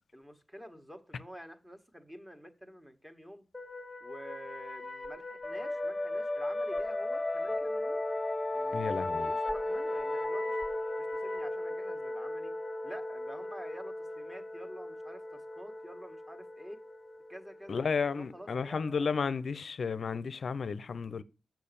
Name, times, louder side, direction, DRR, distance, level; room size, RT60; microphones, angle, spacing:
voice 1, 0.1-3.4 4.0-8.0 8.5-10.6 11.0-12.5 12.8-16.8 17.3-19.2, equal, 10° right, 1.6 m, -49 dB
sound 1, 3.5-18.9, left 2 dB, 20° left, 1.1 m, -36 dB
voice 2, 8.7-9.3 17.7-21.2, left 5 dB, 65° left, 0.6 m, -33 dB
6.8 x 6.0 x 6.9 m
cardioid pair, 65°, 0 cm